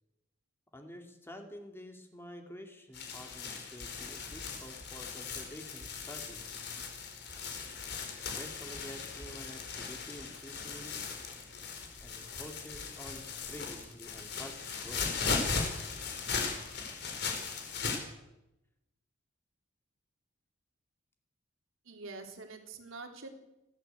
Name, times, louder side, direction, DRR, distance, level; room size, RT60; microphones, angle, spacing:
voice 1, 0.7-6.6 8.2-11.0 12.0-15.4, left 1 dB, 10° left, 4 dB, 2.5 m, -49 dB
sound 1, 2.9-18.0, left 5 dB, 55° left, 4.8 m, -38 dB
voice 2, 21.9-23.3, right 3 dB, 85° right, 3 dB, 3.8 m, -45 dB
29.5 x 13.0 x 8.2 m, 0.92 s
head